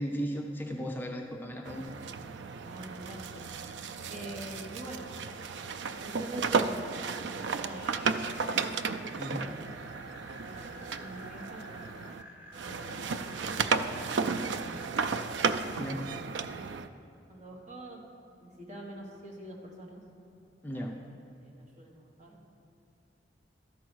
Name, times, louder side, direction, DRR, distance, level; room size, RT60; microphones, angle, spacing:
voice 1, 0.0-2.0 9.2-9.5 15.7-16.1 20.6-20.9, equal, 10° left, 1 dB, 0.5 m, -35 dB
sound 1, 1.7-12.2 12.5-16.9, right 5 dB, 85° right, 0.4 m, -34 dB
voice 2, 2.4-3.3 4.1-5.5 6.0-8.5 9.4-9.9 10.4-12.4 12.6-15.1 15.6-16.4 17.3-18.1 18.4-20.0 20.7-22.5, right 1 dB, 40° right, -2 dB, 1.4 m, -46 dB
sound 2, 7.1-14.9, equal, 10° right, 1.5 m, -51 dB
12.5 x 4.7 x 6.2 m, 2.8 s
head